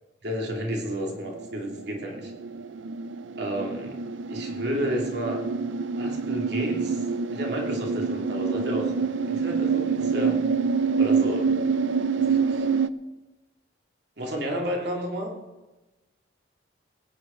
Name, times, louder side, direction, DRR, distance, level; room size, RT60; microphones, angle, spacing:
voice 1, 0.2-2.3 3.4-4.0 4.3-5.4 6.0-7.0 7.3-8.9 9.3-10.4 10.9-11.8 12.1-12.6 14.2-15.3, equal, 60° right, 0 dB, 2.9 m, -31 dB
sound 1, 1.1-12.9, right 5 dB, 80° right, 0.6 m, -26 dB
20.0 x 9.9 x 4.5 m, 1.1 s
head